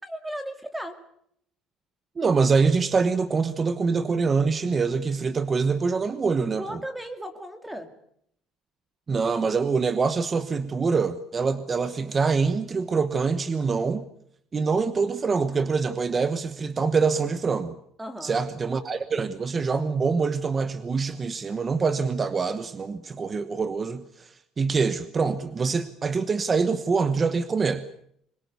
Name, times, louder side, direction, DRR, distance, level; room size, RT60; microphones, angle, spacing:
voice 1, 0.0-1.0 6.5-7.9 18.0-18.4, right 1 dB, 5° right, 8 dB, 2.5 m, -36 dB
voice 2, 2.2-6.8 9.1-14.1 14.5-17.7 18.2-27.8, right 4 dB, 20° right, 12 dB, 1.1 m, -25 dB
25.5 x 22.5 x 6.9 m, 0.70 s
cardioid pair, 170°, 0 cm